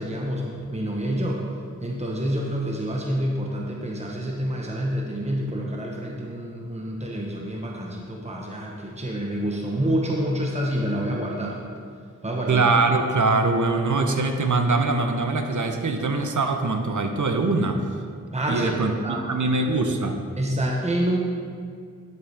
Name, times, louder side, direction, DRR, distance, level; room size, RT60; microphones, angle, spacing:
voice 1, 0.0-1.4 1.8-11.6 12.2-12.6 18.3-18.7 19.0-19.2 20.4-21.2, right 1 dB, 20° right, -2 dB, 1.2 m, -27 dB
voice 2, 12.5-17.8 18.5-18.9 19.3-20.2, right 3 dB, 70° right, 5 dB, 0.9 m, -22 dB
9.8 x 7.5 x 3.5 m, 2.2 s
cardioid pair, 40°, 32 cm